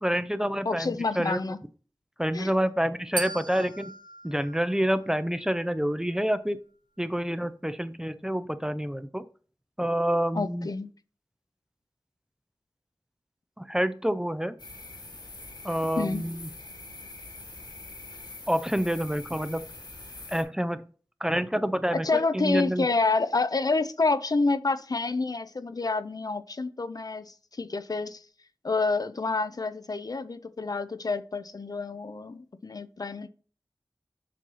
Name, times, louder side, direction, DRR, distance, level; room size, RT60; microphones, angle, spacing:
voice 1, 0.0-1.4 2.2-3.9 4.2-6.6 7.0-9.2 9.8-10.7 13.6-14.6 15.6-16.5 18.5-19.7 20.3-20.8 21.2-22.9, equal, 10° right, 0.5 m, -28 dB
voice 2, 0.7-1.6 2.3-2.5 10.3-10.9 16.0-16.2 21.9-28.2 28.6-33.3, left 3 dB, 50° left, 0.4 m, -28 dB
sound 1, 3.2-5.4, right 3 dB, 70° right, 0.7 m, -38 dB
sound 2, 14.6-20.4, left 2 dB, 70° left, 1.6 m, -44 dB
7.4 x 2.7 x 5.4 m
wide cardioid pair, 60°, 8 cm